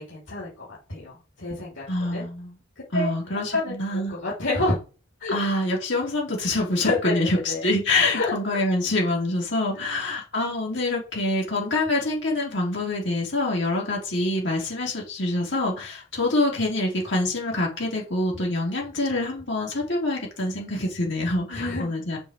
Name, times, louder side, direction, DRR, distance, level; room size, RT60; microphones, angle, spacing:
voice 1, 0.0-2.3 2.9-3.1 3.5-4.8 5.2-5.3 6.8-7.2 7.5-7.6 8.1-8.3 9.7-10.0 21.5-21.9, left 2 dB, 80° left, -5 dB, 3.4 m, -28 dB
voice 2, 1.9-2.5 2.9-4.2 5.3-22.2, left 2 dB, 65° left, -2 dB, 4.0 m, -26 dB
7.0 x 5.3 x 7.1 m, 0.34 s
head